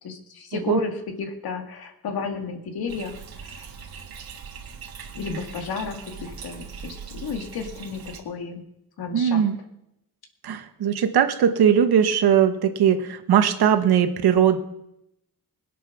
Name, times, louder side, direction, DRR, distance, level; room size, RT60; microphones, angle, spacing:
voice 1, 0.0-3.7 5.1-8.6 9.0-9.4, left 4 dB, 75° left, 5 dB, 2.2 m, -33 dB
Bathtub (filling or washing), 2.9-8.2, right 6 dB, 70° right, 2.1 m, -40 dB
voice 2, 9.1-9.6 10.4-14.6, right 8 dB, 85° right, 8 dB, 1.4 m, -20 dB
21.0 x 8.4 x 6.0 m, 0.83 s
wide cardioid pair, 145°, 37 cm